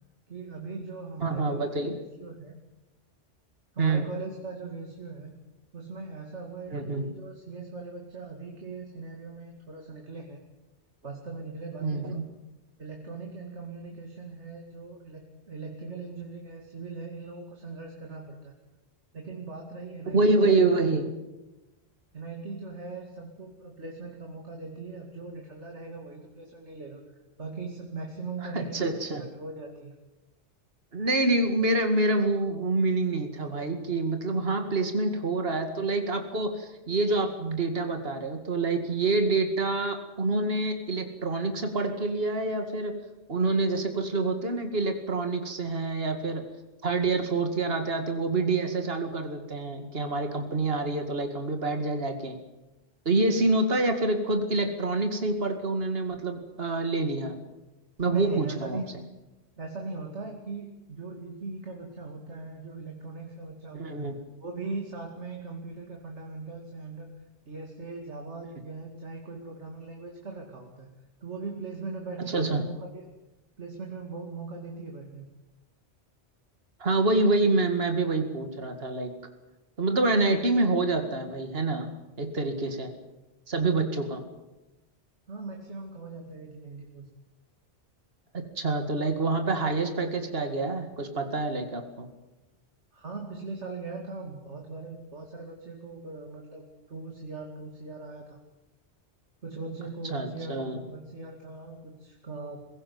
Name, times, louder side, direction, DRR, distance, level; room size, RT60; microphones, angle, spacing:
voice 1, 0.3-2.5 3.7-5.3 5.7-10.4 11.0-12.2 12.8-18.5 19.1-20.5 22.1-27.0 27.4-28.9 29.2-29.9 58.1-58.9 59.6-64.0 64.4-67.1 67.5-70.9 71.2-73.0 73.6-75.3 85.3-87.0 92.9-98.4 99.4-102.6, right 3 dB, 85° right, 1 dB, 2.8 m, -40 dB
voice 2, 1.2-1.9 3.8-4.0 6.7-7.0 11.8-12.2 20.1-21.1 28.4-29.2 30.9-42.9 43.3-46.5 46.8-52.4 53.1-57.4 58.0-58.8 63.7-64.2 72.3-72.6 76.8-79.1 79.8-81.9 82.2-82.9 83.5-84.2 88.3-92.1 100.1-100.8, right 2 dB, 60° right, 6 dB, 2.4 m, -27 dB
21.5 x 17.0 x 9.5 m, 1.0 s
omnidirectional pair, 1.1 m